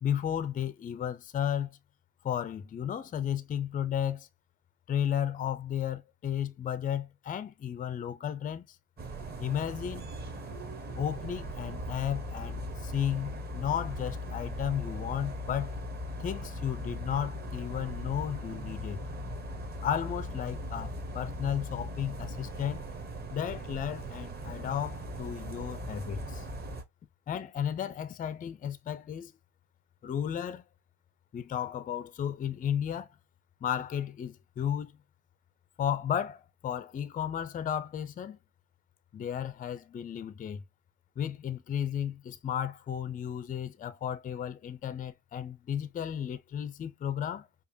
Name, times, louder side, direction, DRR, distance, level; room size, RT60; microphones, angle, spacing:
voice 1, 0.0-1.8 2.2-4.3 4.9-8.8 9.4-10.1 10.9-15.7 16.2-19.0 19.8-22.9 23.3-26.5 27.3-29.3 30.0-30.6 31.3-33.1 33.6-34.9 35.8-38.4 39.1-40.6 41.2-47.5, left 9 dB, 25° left, 0.4 m, -33 dB
sound 1, 9.0-26.8, equal, 25° right, 1.0 m, -39 dB
4.9 x 2.3 x 2.7 m
cardioid pair, 110°, 38 cm